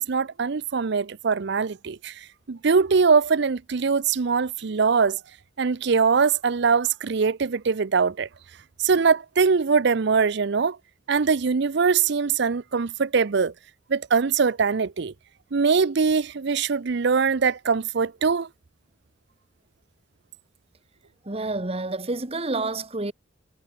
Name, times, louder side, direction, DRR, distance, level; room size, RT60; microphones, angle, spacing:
voice 1, 0.0-5.2 5.6-8.3 8.8-10.8 11.1-13.5 13.9-15.1 15.5-18.5, right 5 dB, 60° right, 0.6 m, -22 dB
voice 2, 21.2-23.1, right 2 dB, 30° right, 1.3 m, -29 dB
head